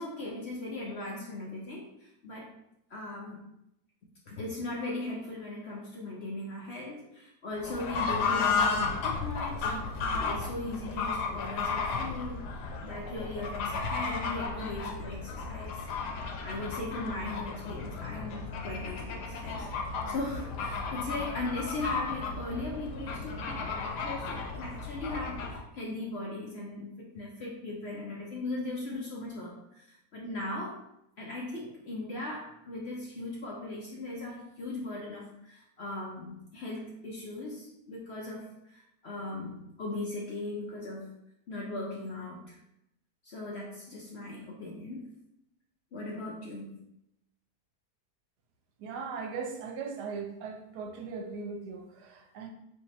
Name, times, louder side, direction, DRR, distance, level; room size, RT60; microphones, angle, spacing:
voice 1, 0.0-2.5 2.9-3.4 4.3-9.7 10.1-12.5 12.8-15.9 16.4-30.8 31.2-41.1 41.5-42.6 43.2-45.1 45.9-46.7, left 2 dB, 60° left, -3 dB, 0.7 m, -38 dB
Fowl / Bird, 7.6-25.6, left 4 dB, 90° left, 1.3 m, -34 dB
voice 2, 48.8-52.5, right 5 dB, 85° right, 4 dB, 1.2 m, -39 dB
3.4 x 2.8 x 4.1 m, 0.82 s
omnidirectional pair, 1.7 m